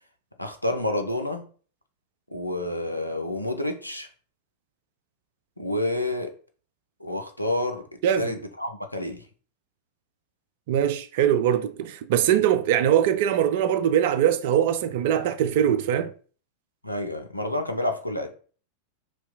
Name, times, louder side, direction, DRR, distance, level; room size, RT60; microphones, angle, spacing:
voice 1, 0.4-1.4 2.3-4.1 5.6-6.3 7.0-7.8 8.2-9.2 16.8-18.3, left 1 dB, 90° left, 0.4 m, -29 dB
voice 2, 8.0-8.4 10.7-16.1, right 10 dB, 50° right, 0.3 m, -22 dB
2.7 x 2.2 x 3.9 m
figure-of-eight pair, 90°, 0 cm